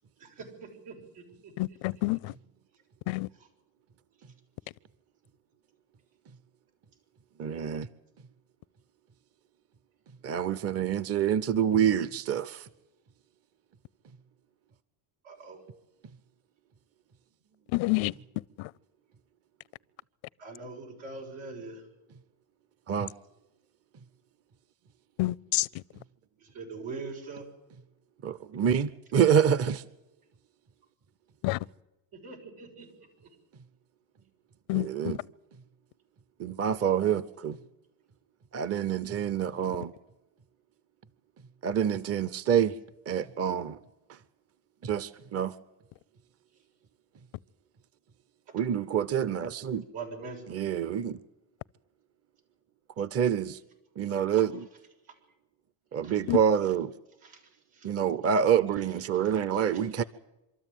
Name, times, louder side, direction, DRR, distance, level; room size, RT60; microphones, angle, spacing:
voice 1, 0.2-1.5 15.2-15.6 20.4-21.8 26.4-27.4 32.2-32.9 49.9-50.6 56.0-56.2 57.2-57.4 57.7-57.9 59.2-59.8, right 4 dB, 90° right, 6.9 m, -43 dB
voice 2, 1.6-2.2 3.1-3.3 17.7-18.1 25.2-25.7 31.4-31.6 34.7-34.9 56.3-56.4, left 22 dB, 80° left, 0.7 m, -27 dB
voice 3, 7.4-7.9 10.2-12.6 22.9-23.1 28.2-29.8 34.7-35.2 36.4-37.6 38.5-39.9 41.6-42.7 43.1-43.8 44.8-45.5 48.5-49.8 50.5-51.2 53.0-53.6 54.0-54.5 55.9-56.9 57.8-60.0, right 8 dB, 30° right, 0.7 m, -27 dB
25.5 x 13.5 x 9.2 m
cardioid pair, 130°, 46 cm